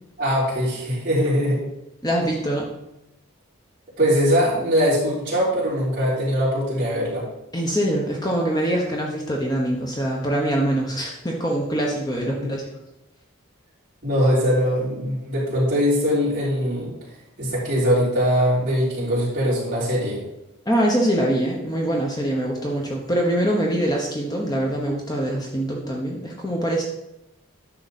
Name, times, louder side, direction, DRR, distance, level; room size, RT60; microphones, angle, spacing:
voice 1, 0.2-1.6 4.0-7.2 12.2-12.5 14.0-16.9 17.4-20.2, equal, 40° right, -12 dB, 3.5 m, -21 dB
voice 2, 2.0-2.7 7.5-12.7 20.7-26.8, right 1 dB, 20° left, -1 dB, 1.0 m, -24 dB
10.0 x 6.5 x 4.2 m, 0.89 s
head